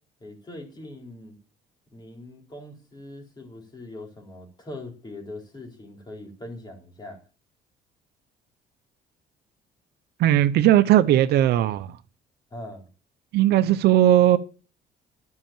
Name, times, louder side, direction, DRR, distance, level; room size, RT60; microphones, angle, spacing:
voice 1, 0.2-1.4 1.9-7.2 12.5-12.9, left 1 dB, 25° left, 4.3 m, -41 dB
voice 2, 10.2-12.0 13.3-14.4, right 12 dB, 75° right, 0.8 m, -18 dB
12.5 x 5.6 x 8.9 m
cardioid pair, 110°, 17 cm